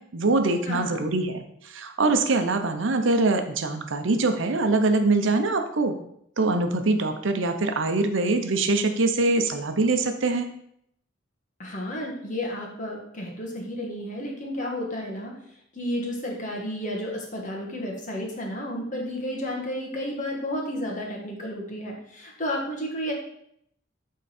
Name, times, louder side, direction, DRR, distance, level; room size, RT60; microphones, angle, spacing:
voice 1, 0.1-5.9 6.4-10.5, right 3 dB, 75° right, 7 dB, 0.7 m, -23 dB
voice 2, 0.7-1.0 11.6-15.4 15.7-23.1, equal, 40° left, -1 dB, 1.5 m, -32 dB
8.7 x 3.7 x 4.3 m, 0.72 s
head